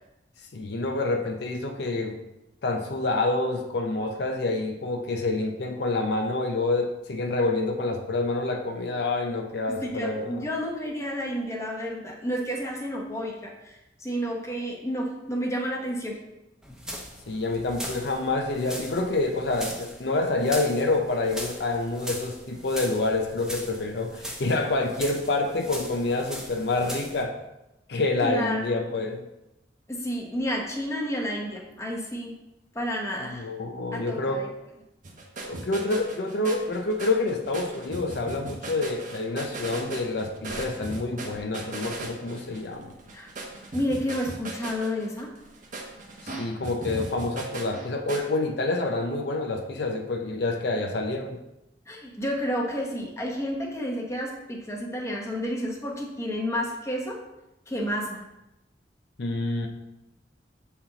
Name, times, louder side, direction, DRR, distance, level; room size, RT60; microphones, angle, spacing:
voice 1, 0.5-2.2 2.6-10.4 17.3-27.4 27.9-29.2 33.2-34.4 35.4-42.9 46.2-51.4 59.2-59.7, left 2 dB, 65° left, 3 dB, 0.6 m, -27 dB
voice 2, 9.8-16.2 28.2-28.9 29.9-32.4 32.7-33.5 33.9-34.5 43.1-43.3 43.7-45.3 51.9-57.2 57.7-58.2, equal, 15° left, -1 dB, 1.1 m, -30 dB
sound 1, 16.6-27.2, equal, 5° right, 0.8 m, -40 dB
sound 2, 35.0-48.2, right 2 dB, 45° right, 1.0 m, -38 dB
7.3 x 4.2 x 3.9 m, 0.95 s
head